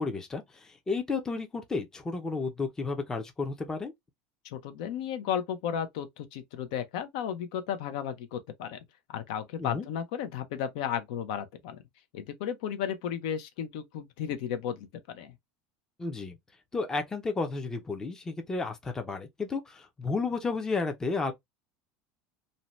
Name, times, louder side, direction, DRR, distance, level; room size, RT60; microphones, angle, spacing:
voice 1, 0.0-3.9 9.6-9.9 16.0-16.4 16.7-21.3, left 4 dB, 15° left, 0.5 m, -32 dB
voice 2, 4.4-8.8 9.1-11.8 12.1-15.3, left 8 dB, 75° left, 0.6 m, -34 dB
2.6 x 2.1 x 2.9 m
supercardioid pair, 140°, 4 cm